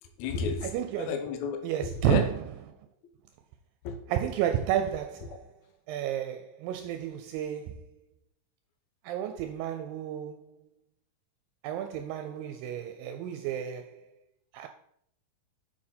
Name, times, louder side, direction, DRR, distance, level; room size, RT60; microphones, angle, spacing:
voice 1, 0.0-0.7 1.0-2.3 3.8-4.0 5.2-5.4, left 5 dB, 70° left, 1.9 m, -33 dB
voice 2, 0.7-1.2 1.6-2.3 4.1-5.4 5.9-7.9 9.0-10.6 11.6-14.1 14.5-14.7, right 10 dB, 80° right, 2.2 m, -31 dB
7.4 x 6.2 x 4.3 m
omnidirectional pair, 4.2 m